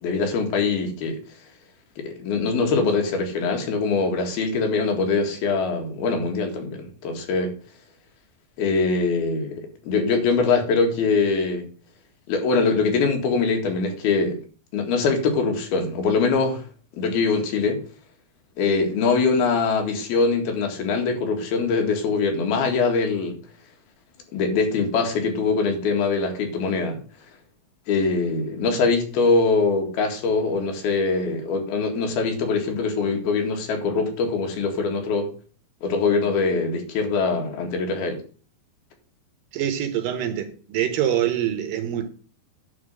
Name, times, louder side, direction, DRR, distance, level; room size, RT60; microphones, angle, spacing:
voice 1, 0.0-1.2 2.0-7.5 8.6-11.7 12.3-14.4 14.7-16.6 16.9-17.8 18.6-23.4 24.3-27.0 27.9-35.3 35.8-38.2, left 4 dB, 85° left, 3.8 m, -23 dB
voice 2, 39.5-42.1, right 10 dB, 70° right, 2.8 m, -25 dB
11.0 x 4.4 x 7.8 m
omnidirectional pair, 4.2 m